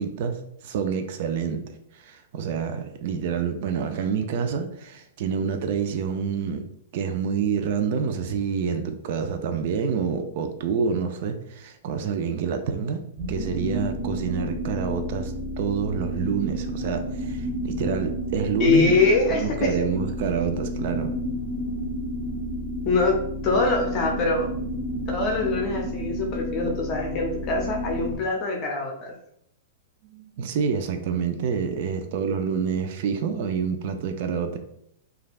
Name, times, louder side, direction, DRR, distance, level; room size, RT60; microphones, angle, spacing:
voice 1, 0.0-1.6 2.0-6.7 6.9-18.9 19.4-21.1 30.1-34.6, right 6 dB, 55° right, 7 dB, 0.4 m, -27 dB
sound 1, 13.2-28.2, equal, 20° right, 0.7 m, -31 dB
voice 2, 18.6-19.7 22.8-24.5 25.1-29.2, left 3 dB, 35° left, 2 dB, 0.6 m, -23 dB
3.2 x 2.4 x 2.4 m, 0.72 s
hypercardioid pair, 140°, 0 cm